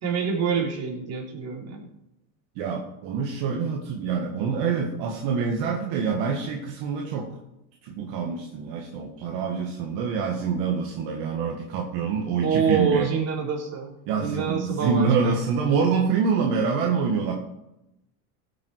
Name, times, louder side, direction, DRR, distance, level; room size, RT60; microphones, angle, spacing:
voice 1, 0.0-1.9 12.4-13.9 14.2-15.4, right 6 dB, 35° right, -1 dB, 3.9 m, -26 dB
voice 2, 2.6-7.3 7.8-13.1 14.1-17.3, right 5 dB, 65° right, 0 dB, 1.9 m, -26 dB
16.0 x 7.3 x 4.7 m, 0.86 s
supercardioid pair, 125°, 43 cm